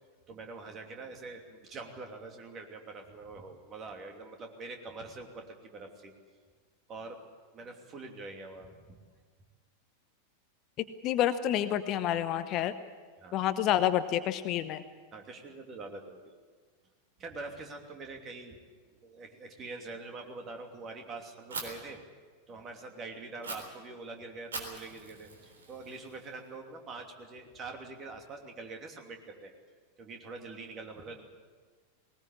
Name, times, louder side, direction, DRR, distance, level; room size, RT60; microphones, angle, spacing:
voice 1, 0.3-6.1 6.9-7.2 7.5-9.0 13.2-13.4 15.1-16.3 17.2-18.6 18.8-22.0 22.5-29.5 30.0-31.2, right 3 dB, 25° right, 3 dB, 2.9 m, -44 dB
voice 2, 11.0-12.7 13.3-14.8, left 11 dB, 35° left, 12 dB, 0.8 m, -28 dB
Fire, 21.5-21.6 23.4-23.5 24.5-26.5, right 3 dB, 70° right, 3.8 m, -42 dB
20.0 x 19.5 x 8.5 m, 1.5 s
figure-of-eight pair, 90°, 0 cm